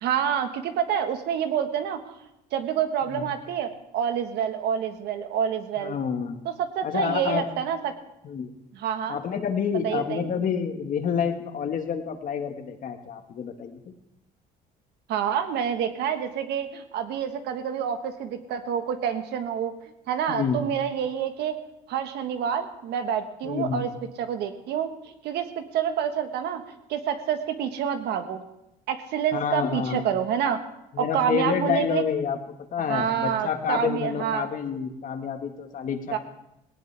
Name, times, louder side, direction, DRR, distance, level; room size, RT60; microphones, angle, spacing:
voice 1, 0.0-6.0 6.4-7.9 8.7-9.2 9.8-10.3 15.1-19.7 20.1-21.6 21.9-23.9 24.2-26.6 26.9-28.4 28.9-30.6 31.0-32.0 32.9-34.5 36.1-36.2, right 8 dB, 80° right, 7 dB, 1.5 m, -28 dB
voice 2, 5.8-6.5 6.8-7.4 8.2-8.5 9.1-13.8 20.3-20.6 23.4-23.8 29.3-30.1 30.9-32.4 32.7-36.0, left 7 dB, 50° left, 6 dB, 1.7 m, -28 dB
18.0 x 17.5 x 3.5 m, 0.87 s
cardioid pair, 110°, 17 cm